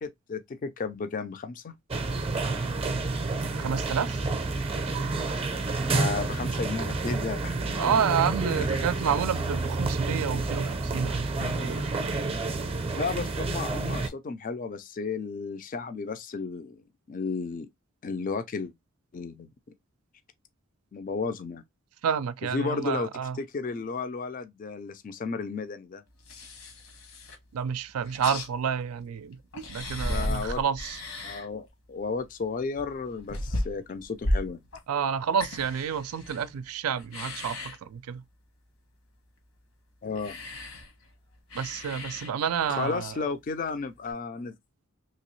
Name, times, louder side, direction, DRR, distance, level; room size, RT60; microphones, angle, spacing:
voice 1, 0.0-1.7 5.9-7.6 8.5-8.7 11.4-11.7 13.0-16.8 17.1-17.7 18.0-18.7 19.1-19.5 20.9-21.6 22.5-23.1 23.4-26.0 30.0-30.6 31.2-34.6 40.0-40.4 42.7-44.5, left 4 dB, 40° left, 0.4 m, -33 dB
sound 1, 1.9-14.1, right 3 dB, 25° right, 0.5 m, -29 dB
voice 2, 3.6-4.3 7.8-11.6 22.0-23.4 27.5-29.4 29.7-31.0 34.9-38.2 41.5-43.3, right 7 dB, 90° right, 0.4 m, -29 dB
sound 2, 26.2-27.6 27.9-29.0 29.3-31.7 32.0-36.7 37.0-37.8 40.1-43.0 44.1-44.2, left 1 dB, 70° left, 1.1 m, -35 dB
3.0 x 2.8 x 3.0 m
head